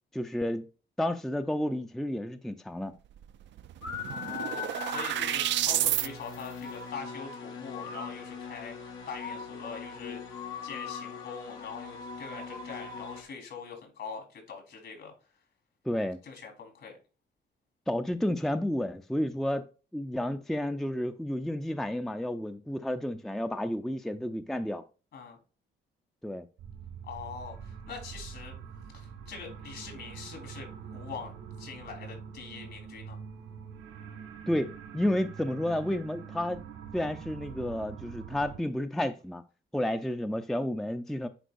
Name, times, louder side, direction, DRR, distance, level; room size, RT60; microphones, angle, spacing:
voice 1, 0.1-0.6 1.0-2.9 15.9-16.2 17.9-19.7 19.9-24.8 26.2-26.4 34.5-36.6 36.9-39.4 39.7-41.3, left 1 dB, ahead, 0.4 m, -31 dB
sound 1, 3.2-3.3 3.6-6.1, right 12 dB, 65° right, 0.4 m, -30 dB
sound 2, 3.8-13.2, left 5 dB, 85° left, 1.8 m, -40 dB
voice 2, 4.1-10.2 10.6-15.1 16.2-16.9 25.1-25.4 27.0-28.6 28.9-33.2, left 5 dB, 70° left, 3.8 m, -43 dB
sound 3, 26.6-38.6, right 7 dB, 90° right, 2.1 m, -45 dB
10.0 x 4.5 x 2.5 m
cardioid pair, 90°, 20 cm